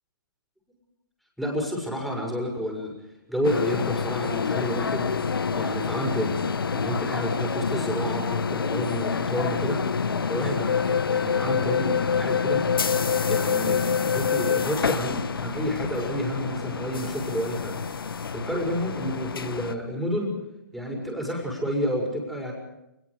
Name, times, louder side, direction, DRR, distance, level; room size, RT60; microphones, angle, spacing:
voice 1, 1.4-2.9 3.3-5.1 5.5-6.4 6.7-9.8 10.3-12.6 13.0-13.8 14.1-17.8 18.3-20.3 20.7-22.5, equal, ahead, -1 dB, 6.5 m, -30 dB
sound 1, 3.4-19.7, left 6 dB, 85° left, 1.3 m, -27 dB
28.0 x 22.0 x 5.1 m, 0.87 s
hypercardioid pair, 145°, 12 cm